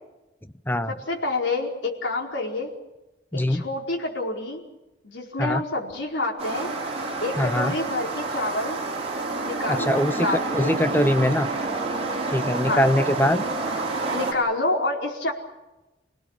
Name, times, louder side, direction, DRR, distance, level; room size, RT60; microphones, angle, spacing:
voice 1, 0.9-2.7 3.3-4.6 5.0-6.7 7.2-8.8 9.4-10.8 12.6-12.8 14.1-15.3, left 2 dB, 80° left, -1 dB, 4.8 m, -28 dB
voice 2, 3.3-3.6 5.4-5.6 7.4-7.8 9.7-10.3 10.5-11.5 12.3-13.4, left 1 dB, 10° left, 11 dB, 0.9 m, -22 dB
sound 1, 6.4-14.3, right 3 dB, 35° right, 5.1 m, -28 dB
28.0 x 18.5 x 7.5 m, 1.0 s
head